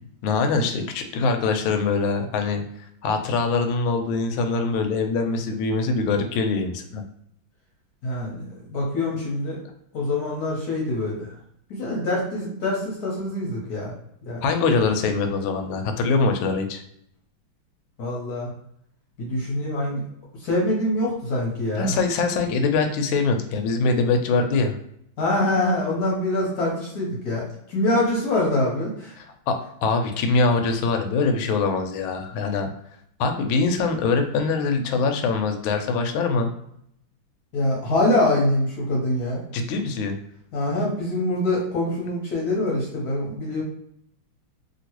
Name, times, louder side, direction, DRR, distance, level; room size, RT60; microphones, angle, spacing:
voice 1, 0.2-2.6 3.0-7.0 14.4-16.8 21.8-24.8 29.2-32.7 33.2-36.5 39.5-40.2, left 4 dB, 80° left, 5 dB, 1.3 m, -23 dB
voice 2, 8.0-9.6 9.9-11.3 11.7-13.9 14.3-14.5 18.0-18.5 19.2-20.0 20.4-22.0 25.2-29.1 37.5-39.4 40.5-43.6, left 1 dB, 60° left, -3 dB, 1.1 m, -24 dB
2.9 x 2.9 x 2.9 m, 0.73 s
omnidirectional pair, 2.3 m